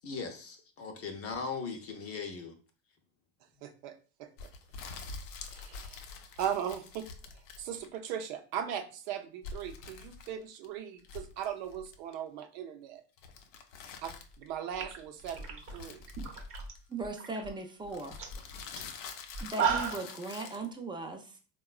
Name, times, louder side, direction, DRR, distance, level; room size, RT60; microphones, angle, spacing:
voice 1, 0.0-2.5, left 5 dB, 35° left, 0.7 m, -39 dB
voice 2, 3.6-4.5 5.5-6.0 6.4-7.0 7.6-13.0 14.0-16.0, right 9 dB, 65° right, 0.6 m, -38 dB
sound 1, 4.4-8.0 9.4-10.7 11.0-12.1 13.2-14.5 15.2-17.0 17.9-20.7, left 5 dB, 70° left, 0.7 m, -46 dB
sound 2, 14.3-14.4 14.7-16.7 17.0-17.5 17.8-17.9 18.2-18.4 18.8-18.9 19.3-20.1, right 6 dB, 35° right, 0.9 m, -34 dB
voice 3, 16.9-18.2 19.4-21.4, right 3 dB, 10° right, 0.5 m, -38 dB
3.6 x 2.3 x 2.4 m
hypercardioid pair, 95°, 39 cm